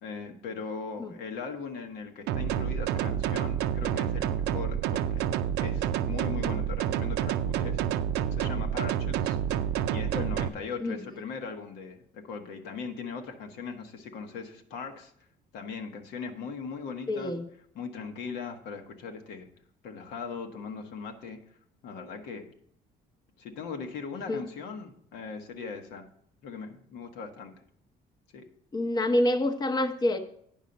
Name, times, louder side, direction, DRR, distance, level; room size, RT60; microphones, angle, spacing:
voice 1, 0.0-5.3 5.6-7.8 8.3-9.4 9.9-15.1 15.5-17.3 17.7-19.5 19.8-21.4 21.8-22.5 23.4-26.1 26.4-27.5 28.3-28.4, left 5 dB, 85° left, 4 dB, 1.2 m, -39 dB
sound 1, 2.3-10.5, right 9 dB, 90° right, 0.5 m, -29 dB
voice 2, 17.1-17.4 24.3-24.4 28.7-30.2, left 1 dB, 25° left, 7 dB, 0.8 m, -27 dB
9.2 x 5.6 x 5.2 m, 0.65 s
cardioid pair, 110°, 17 cm